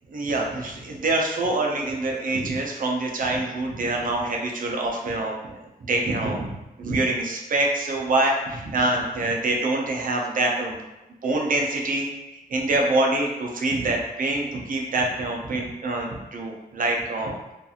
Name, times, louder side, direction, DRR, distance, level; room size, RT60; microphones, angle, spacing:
voice 1, 0.1-6.5 6.8-10.8 11.2-17.3, right 2 dB, 60° right, 0 dB, 0.5 m, -25 dB
2.5 x 2.3 x 2.7 m, 0.98 s
wide cardioid pair, 105°, 16 cm